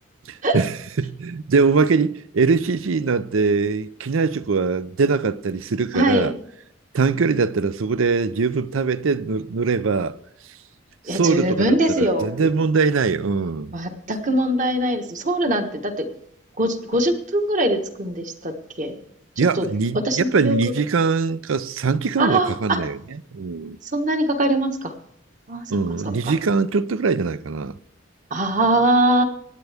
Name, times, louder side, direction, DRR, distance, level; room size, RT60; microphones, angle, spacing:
voice 1, 0.3-6.3 6.9-10.2 11.1-13.7 19.4-23.0 23.3-23.8 25.7-27.8, right 4 dB, 75° right, 0.5 m, -22 dB
voice 2, 5.9-6.4 11.1-12.3 13.7-16.0 16.6-18.9 19.4-19.7 20.0-20.6 22.2-22.8 23.9-24.9 25.5-26.3 28.3-29.2, right 1 dB, 40° right, 1.3 m, -22 dB
24.0 x 9.2 x 3.5 m
head